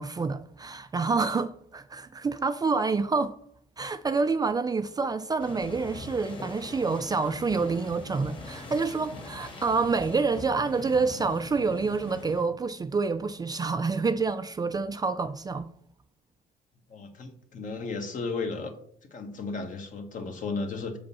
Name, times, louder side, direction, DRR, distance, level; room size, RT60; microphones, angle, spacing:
voice 1, 0.0-3.4 3.8-15.7, right 4 dB, 20° right, 0.5 m, -28 dB
sound 1, 5.4-12.4, left 2 dB, 30° left, 1.9 m, -42 dB
voice 2, 16.9-18.7 19.1-21.0, left 4 dB, 50° left, 1.6 m, -34 dB
7.3 x 5.2 x 5.5 m
cardioid pair, 110°, 17 cm